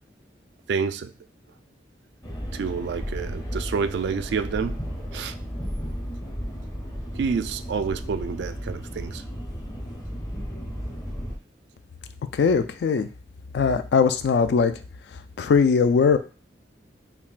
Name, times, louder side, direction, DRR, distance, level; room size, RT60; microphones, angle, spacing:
voice 1, 0.7-1.1 2.5-4.8 5.1-5.4 7.1-9.2, right 5 dB, 70° right, 11 dB, 0.3 m, -28 dB
sound 1, 2.2-11.4, equal, 20° left, 0.7 m, -34 dB
voice 2, 12.3-13.1 13.5-14.7 15.4-16.2, left 5 dB, 65° left, 10 dB, 0.3 m, -20 dB
5.6 x 2.2 x 2.4 m, 0.36 s
head